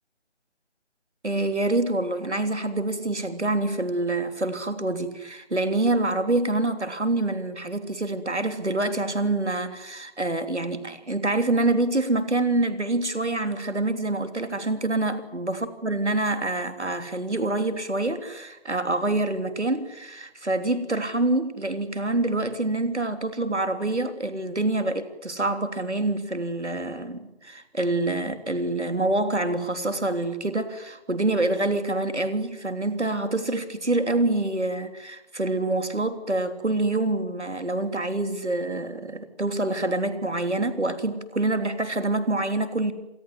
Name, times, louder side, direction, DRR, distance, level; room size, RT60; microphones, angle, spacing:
voice 1, 1.2-42.9, right 2 dB, 80° right, 3.3 m, -26 dB
26.5 x 19.5 x 9.4 m
figure-of-eight pair, 155°, 34 cm